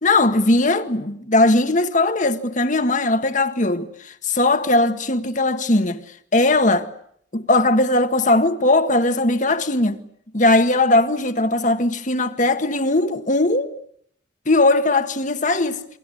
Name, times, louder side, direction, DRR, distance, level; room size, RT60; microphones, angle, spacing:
voice 1, 0.0-6.0 6.3-6.9 7.3-10.0 10.3-13.7 14.4-15.8, left 2 dB, 40° left, 1.7 m, -19 dB
28.5 x 23.0 x 8.6 m
head